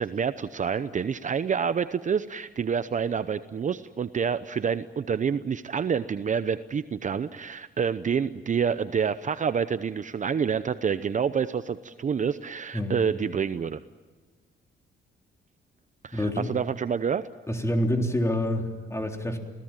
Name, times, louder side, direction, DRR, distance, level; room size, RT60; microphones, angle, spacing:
voice 1, 0.0-13.8 16.0-17.2, right 7 dB, 40° right, 12 dB, 0.8 m, -28 dB
voice 2, 16.1-16.5 17.5-19.4, left 1 dB, 15° left, 3 dB, 3.7 m, -27 dB
29.0 x 18.0 x 9.1 m, 1.4 s
cardioid pair, 90°, 20 cm